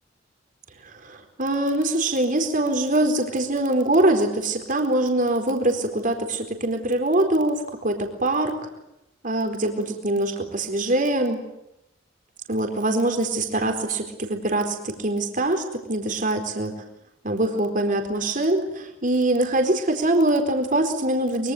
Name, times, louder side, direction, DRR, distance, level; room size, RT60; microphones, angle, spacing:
voice 1, 1.0-8.6 9.2-11.4 12.5-16.7 17.2-21.5, right 1 dB, 45° right, 4 dB, 4.3 m, -23 dB
25.0 x 23.5 x 7.9 m, 0.86 s
head